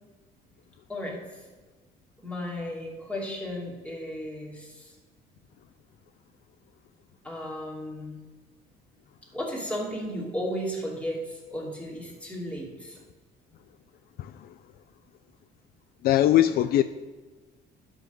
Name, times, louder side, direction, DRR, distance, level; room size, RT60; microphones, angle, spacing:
voice 1, 2.2-4.9 7.2-8.2 9.3-13.0, equal, 5° left, 2.8 m, -34 dB
voice 2, 14.2-14.5 16.0-16.8, left 13 dB, 65° left, 0.4 m, -21 dB
11.0 x 3.9 x 7.3 m
cardioid pair, 110°, 17 cm